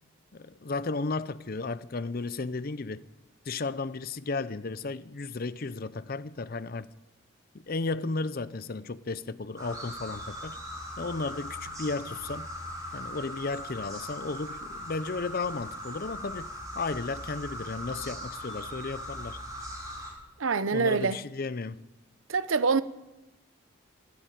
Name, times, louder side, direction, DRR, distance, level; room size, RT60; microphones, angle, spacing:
voice 1, 0.3-3.0 3.5-6.9 7.5-10.6 11.0-12.5 12.9-16.5 16.7-19.4 20.7-21.8, left 3 dB, 45° left, 0.6 m, -34 dB
sound 1, 9.6-20.1, equal, 15° right, 4.5 m, -40 dB
voice 2, 20.4-21.2 22.3-22.8, right 4 dB, 85° right, 0.8 m, -25 dB
13.0 x 12.5 x 9.0 m
head